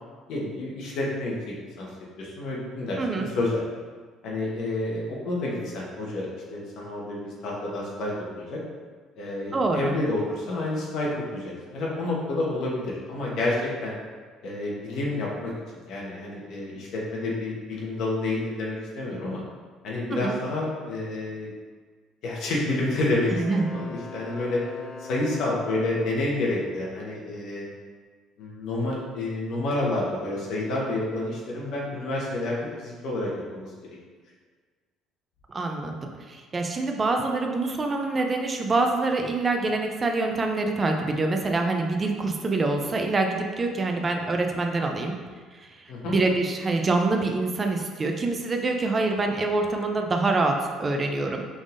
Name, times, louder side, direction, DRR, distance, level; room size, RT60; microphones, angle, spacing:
voice 1, 0.3-1.9 2.2-3.6 4.2-8.6 9.2-13.9 14.4-15.5 15.8-19.4 19.8-21.5 22.2-24.6 25.0-27.7 28.4-34.0 45.9-46.2, left 2 dB, 60° left, -4 dB, 1.2 m, -29 dB
voice 2, 3.0-3.3 9.5-9.9 20.1-20.4 23.4-23.7 35.5-45.1 45.6-45.7 46.1-51.4, right 3 dB, 25° right, 3 dB, 0.5 m, -25 dB
Wind instrument woodwind instrument, 23.2-26.3, left 3 dB, 80° left, 1.3 m, -42 dB
5.2 x 3.5 x 2.6 m, 1.5 s
cardioid pair, 140°, 0 cm